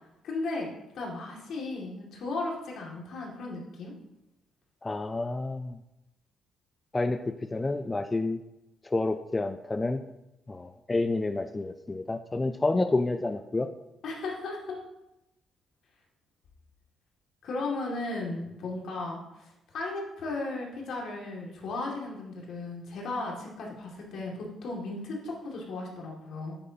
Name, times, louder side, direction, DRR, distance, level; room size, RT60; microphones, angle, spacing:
voice 1, 0.2-0.7 0.9-3.9 14.0-14.8 17.4-26.6, left 2 dB, 70° left, -2 dB, 2.1 m, -35 dB
voice 2, 4.8-5.8 6.9-8.4 8.8-10.0 10.5-13.7, left 2 dB, 20° left, 8 dB, 0.4 m, -29 dB
8.8 x 8.3 x 2.8 m, 0.92 s
cardioid pair, 90°, 0 cm